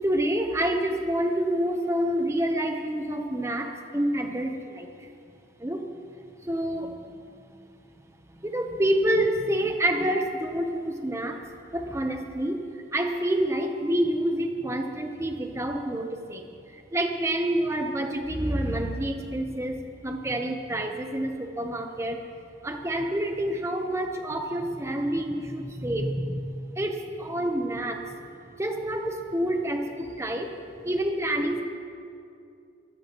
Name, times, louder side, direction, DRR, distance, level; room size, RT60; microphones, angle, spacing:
voice 1, 0.0-5.1 5.6-5.9 6.5-6.9 8.4-11.4 11.7-12.6 12.9-22.2 22.6-28.1 28.6-30.5 30.8-31.6, right 1 dB, 15° right, 4 dB, 0.8 m, -28 dB
24.0 x 14.5 x 3.0 m, 2.5 s
head